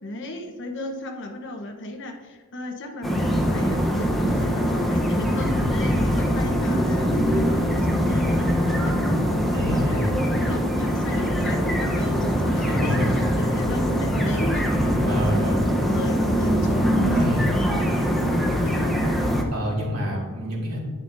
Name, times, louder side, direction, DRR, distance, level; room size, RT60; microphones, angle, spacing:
voice 1, 0.0-13.0 13.4-17.3 17.6-18.9, left 1 dB, 55° left, 3 dB, 1.1 m, -35 dB
sound 1, 3.0-19.4, equal, ahead, 0.9 m, -22 dB
voice 2, 9.5-10.1 12.5-13.4 15.1-15.7 17.1-17.5 19.5-20.8, equal, 90° right, -4 dB, 2.8 m, -27 dB
10.5 x 8.8 x 2.7 m, 1.4 s
head